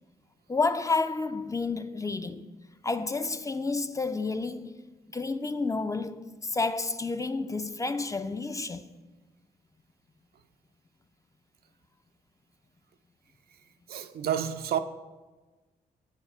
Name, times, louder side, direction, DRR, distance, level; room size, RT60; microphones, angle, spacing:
voice 1, 0.5-2.5 2.8-4.7 5.1-8.9, left 3 dB, 20° left, 0.4 m, -30 dB
voice 2, 13.9-14.8, right 9 dB, 70° right, 0.5 m, -29 dB
7.2 x 4.5 x 5.4 m
supercardioid pair, 55°, 17 cm